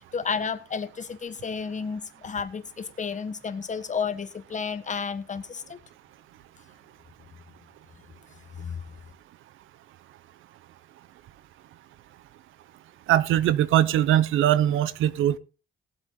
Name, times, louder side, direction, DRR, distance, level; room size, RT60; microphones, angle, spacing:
voice 1, 0.1-5.8 8.6-8.8, left 6 dB, 40° left, 1.5 m, -32 dB
voice 2, 13.1-15.4, right 11 dB, 85° right, 0.8 m, -21 dB
19.0 x 7.8 x 3.9 m
cardioid pair, 90°, 20 cm